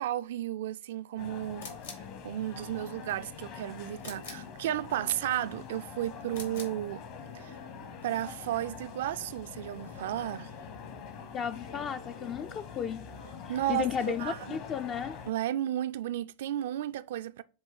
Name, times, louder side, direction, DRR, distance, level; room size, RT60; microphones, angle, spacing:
voice 1, 0.0-1.7 2.0-7.0 7.3-7.6 8.0-10.5 13.5-14.6 15.3-17.4, right 12 dB, 55° right, 0.3 m, -33 dB
sound 1, 1.2-15.3, left 6 dB, 45° left, 1.0 m, -45 dB
sound 2, 1.6-2.1 4.0-4.5 6.3-6.8, left 4 dB, 70° left, 1.6 m, -45 dB
voice 2, 11.3-13.1 13.4-15.2, left 8 dB, 30° left, 0.3 m, -34 dB
7.3 x 2.7 x 5.3 m
figure-of-eight pair, 90°, 0 cm